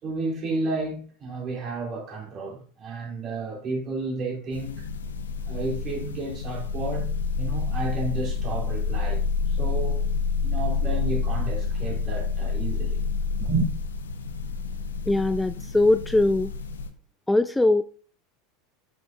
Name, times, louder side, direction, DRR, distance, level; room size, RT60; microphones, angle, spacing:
voice 1, 0.0-4.9 5.5-7.1 7.4-10.0 10.4-13.0 13.4-13.7, right 3 dB, 40° right, 3.1 m, -31 dB
sound 1, 4.5-16.9, left 5 dB, 85° left, 0.7 m, -28 dB
voice 2, 15.1-16.5 17.3-17.8, left 2 dB, 10° left, 0.3 m, -21 dB
7.5 x 6.2 x 2.3 m
hypercardioid pair, 85°, 0 cm